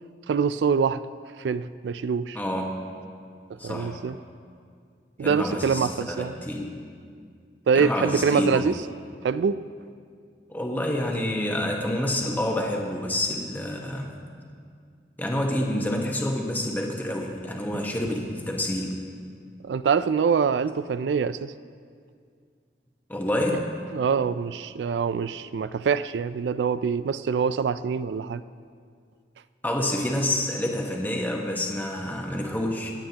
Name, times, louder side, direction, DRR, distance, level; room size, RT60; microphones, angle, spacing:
voice 1, 0.3-1.0 1.4-2.4 3.6-4.2 5.2-6.3 7.7-8.8 9.2-9.6 19.6-21.5 23.5-23.6 23.9-28.4, right 6 dB, 80° right, 14 dB, 0.3 m, -24 dB
voice 2, 2.3-2.8 3.6-4.0 5.2-6.7 7.7-8.7 10.5-14.1 15.2-19.0 23.1-23.7 29.6-32.9, left 1 dB, 10° left, 0 dB, 1.2 m, -28 dB
25.0 x 8.8 x 2.9 m, 2.2 s
head